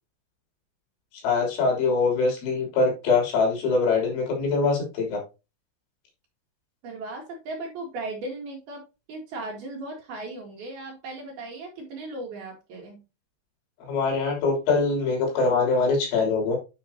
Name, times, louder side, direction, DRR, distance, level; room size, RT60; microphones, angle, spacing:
voice 1, 1.2-5.2 13.8-16.6, left 4 dB, 65° left, 0 dB, 5.4 m, -23 dB
voice 2, 6.8-13.0, right 2 dB, 60° right, 0 dB, 2.9 m, -37 dB
9.9 x 5.7 x 2.8 m, 0.27 s
omnidirectional pair, 5.8 m